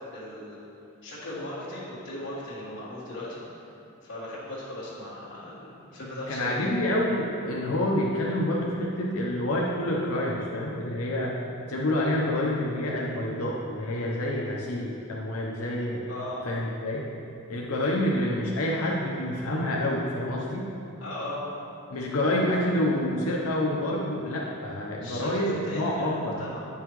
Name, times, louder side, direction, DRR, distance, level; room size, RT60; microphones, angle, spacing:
voice 1, 0.1-0.6 1.0-3.6 4.0-6.7 16.1-16.4 21.0-21.4 25.0-26.7, left 1 dB, 60° left, -14 dB, 1.8 m, -37 dB
voice 2, 6.3-11.3 11.7-16.0 16.4-17.1 17.5-20.7 21.9-26.4, left 1 dB, 90° left, -4 dB, 0.8 m, -28 dB
9.8 x 5.6 x 3.1 m, 2.7 s
head